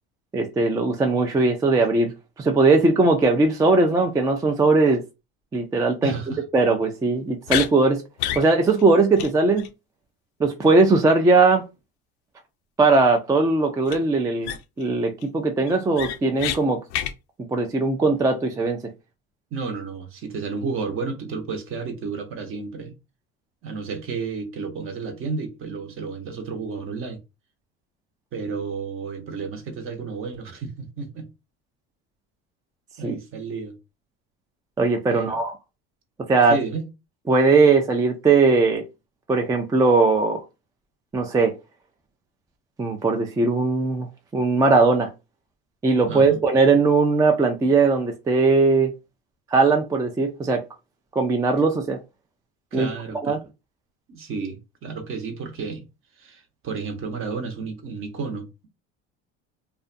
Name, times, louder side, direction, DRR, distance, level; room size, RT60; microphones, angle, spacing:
voice 1, 0.3-2.1 2.4-5.0 5.5-6.1 6.5-8.0 8.4-9.7 10.4-11.6 12.8-14.5 14.8-16.8 17.5-18.8 33.0-33.2 34.8-35.5 36.3-36.6 37.3-38.8 39.3-40.4 41.1-41.5 42.8-44.1 44.3-45.1 45.8-48.9 49.5-50.6 51.2-52.0 52.7-52.9 53.2-53.4, right 3 dB, 10° right, 0.3 m, -19 dB
voice 2, 6.0-6.4 19.5-22.9 23.6-27.2 28.3-31.3 33.0-33.8 35.1-35.4 36.5-36.9 46.1-46.4 52.7-53.4 54.1-55.9 56.2-58.7, right 4 dB, 40° right, 0.8 m, -32 dB
sound 1, 7.5-7.7 8.2-8.5 8.8-8.9 9.2-9.3 9.6-9.7 13.9-14.0 14.4-14.8 15.2-15.3 15.7-16.6 16.9-17.1, left 11 dB, 85° left, 0.5 m, -27 dB
2.5 x 2.2 x 2.5 m
supercardioid pair, 105°, 32 cm